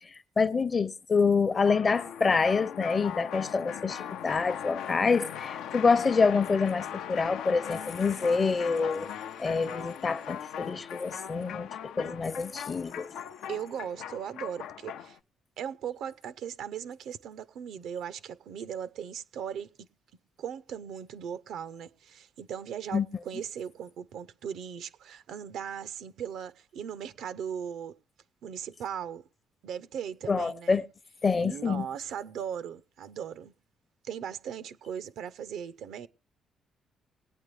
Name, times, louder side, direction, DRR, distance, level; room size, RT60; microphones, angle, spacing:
voice 1, 0.0-9.1 9.4-13.1 22.9-23.1 30.3-30.8 31.2-31.9, left 4 dB, 35° left, 0.7 m, -27 dB
sound 1, 1.6-15.2, left 9 dB, 85° left, 0.5 m, -39 dB
voice 2, 13.5-15.2 15.6-19.9 20.4-28.0 28.4-29.2 29.6-30.8 31.4-33.5 34.0-36.1, right 8 dB, 80° right, 0.6 m, -38 dB
21.0 x 8.8 x 3.2 m
cardioid pair, 90°, 0 cm